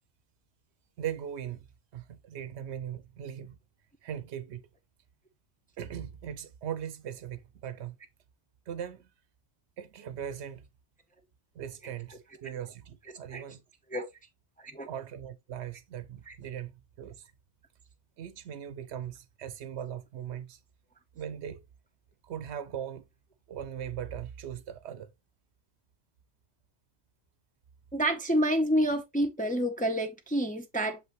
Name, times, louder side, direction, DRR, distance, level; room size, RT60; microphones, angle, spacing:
voice 1, 1.0-1.6 1.9-3.6 4.0-4.6 5.8-7.9 8.7-9.1 9.8-10.7 11.6-13.6 14.8-16.7 17.0-17.3 18.2-20.6 21.1-21.6 22.2-23.1 23.5-25.1, right 9 dB, 85° right, 0.9 m, -39 dB
voice 2, 27.9-31.0, equal, 10° left, 0.6 m, -28 dB
6.8 x 5.4 x 3.0 m
omnidirectional pair, 1.1 m